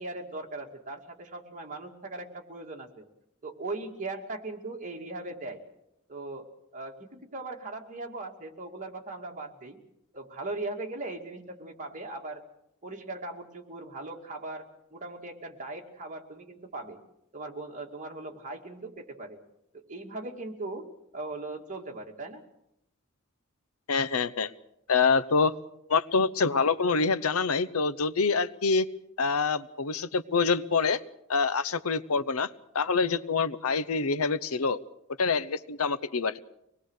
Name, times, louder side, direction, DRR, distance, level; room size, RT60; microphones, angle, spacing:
voice 1, 0.0-3.0 3.4-5.6 6.1-6.5 6.7-9.8 10.1-12.4 12.8-17.0 17.3-19.4 19.7-20.9 21.1-22.4, right 2 dB, 35° right, 1 dB, 2.6 m, -39 dB
voice 2, 23.9-24.5 24.9-25.6 25.9-28.9 29.2-31.0 31.3-32.5 32.7-34.8 35.2-36.4, left 4 dB, 75° left, 15 dB, 0.8 m, -26 dB
25.0 x 20.0 x 6.5 m, 0.81 s
head